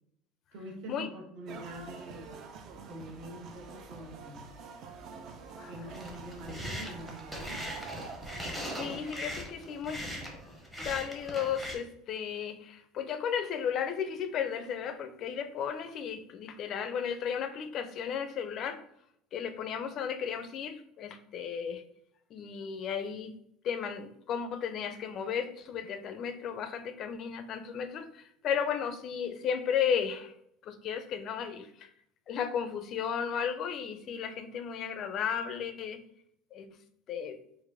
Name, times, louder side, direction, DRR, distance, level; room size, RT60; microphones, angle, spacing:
voice 1, 0.5-2.3 2.8-4.5 5.6-7.7, equal, 55° right, 0 dB, 1.1 m, -45 dB
sound 1, 1.5-9.1, right 5 dB, 40° right, 0.4 m, -46 dB
sound 2, 5.9-11.7, equal, 5° right, 0.7 m, -40 dB
voice 2, 8.8-10.0 10.8-18.8 19.3-21.8 22.3-23.3 23.6-30.3 30.6-31.9 32.3-36.0 36.5-36.7 37.1-37.4, left 7 dB, 35° left, 10 dB, 0.4 m, -34 dB
3.9 x 2.5 x 4.6 m, 0.72 s
cardioid pair, 175°, 0 cm